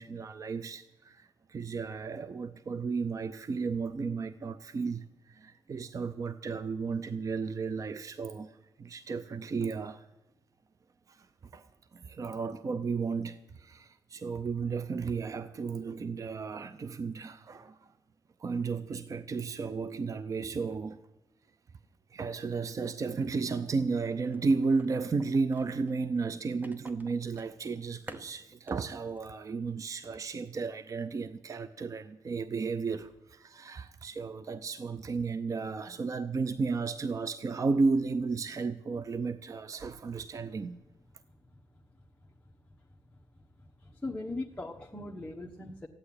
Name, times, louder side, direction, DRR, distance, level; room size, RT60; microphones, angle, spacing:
voice 1, 0.0-10.1 11.1-11.3 11.5-17.9 18.4-21.0 22.1-40.8, right 4 dB, 40° right, 0.6 m, -33 dB
sound 1, 24.3-25.9 26.6-28.8 29.1-29.3 29.7-29.8, right 1 dB, 20° right, 1.2 m, -50 dB
voice 2, 43.8-45.9, left 2 dB, 15° left, 1.1 m, -39 dB
14.5 x 8.8 x 9.8 m
cardioid pair, 110°, 8 cm